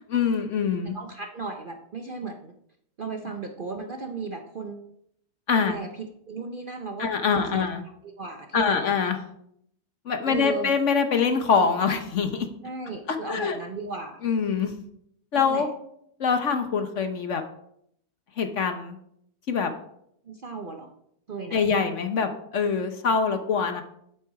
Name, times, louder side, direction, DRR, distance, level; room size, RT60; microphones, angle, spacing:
voice 1, 0.0-1.0 5.5-5.8 7.0-7.8 8.5-9.2 10.0-12.5 13.1-13.6 14.2-14.7 15.3-15.7 16.2-17.4 18.4-19.0 19.5-19.7 21.5-23.8, left 6 dB, 55° left, 7 dB, 1.1 m, -24 dB
voice 2, 0.9-2.5 3.0-4.8 5.6-7.7 8.0-8.8 10.3-10.7 12.6-14.2 15.3-15.7 20.3-20.9 21.3-21.6, right 4 dB, 45° right, 4 dB, 0.7 m, -36 dB
9.2 x 8.0 x 4.7 m, 0.72 s
omnidirectional pair, 1.7 m